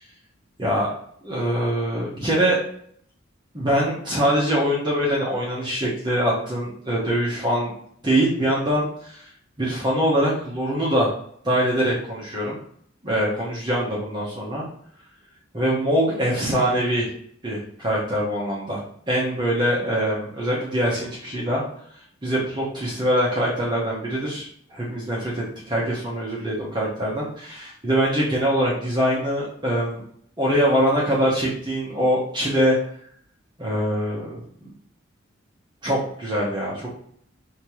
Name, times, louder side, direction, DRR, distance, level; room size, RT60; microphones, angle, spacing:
voice 1, 1.2-2.6 3.5-7.7 8.0-9.2 9.6-11.1 11.4-12.6 13.0-14.7 15.5-17.1 17.4-18.8 19.1-21.6 22.2-30.0 30.4-32.8 33.6-34.7 35.8-36.9, equal, 20° right, -5 dB, 1.0 m, -23 dB
5.2 x 2.9 x 3.0 m, 0.63 s
head